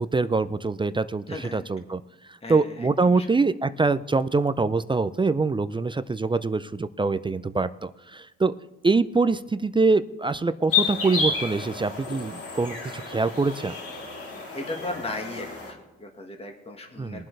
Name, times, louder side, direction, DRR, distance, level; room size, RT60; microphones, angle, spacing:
voice 1, 0.0-1.2 1.5-2.0 2.5-8.5 8.8-13.7 17.0-17.2, right 3 dB, 15° right, 13 dB, 0.4 m, -24 dB
voice 2, 1.3-1.6 2.4-3.3 14.5-17.3, left 2 dB, 20° left, 3 dB, 1.7 m, -36 dB
sound 1, 10.7-15.7, left 5 dB, 50° left, 3.5 m, -30 dB
22.0 x 7.5 x 3.3 m, 1.1 s
cardioid pair, 90°, 30 cm